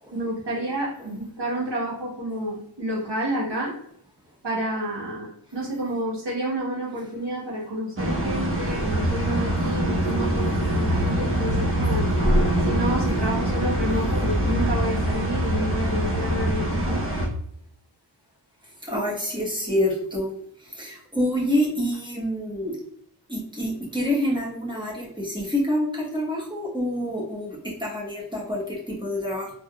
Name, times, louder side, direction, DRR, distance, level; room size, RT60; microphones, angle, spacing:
voice 1, 0.1-3.7 4.4-12.1 12.6-16.6 16.9-17.0, right 1 dB, 65° right, -4 dB, 1.4 m, -29 dB
sound 1, 8.0-17.3, equal, 30° right, 0.8 m, -24 dB
voice 2, 18.6-22.8 23.3-29.5, left 1 dB, 10° right, -4 dB, 1.2 m, -27 dB
3.4 x 2.8 x 2.3 m, 0.71 s
wide cardioid pair, 80°, 45 cm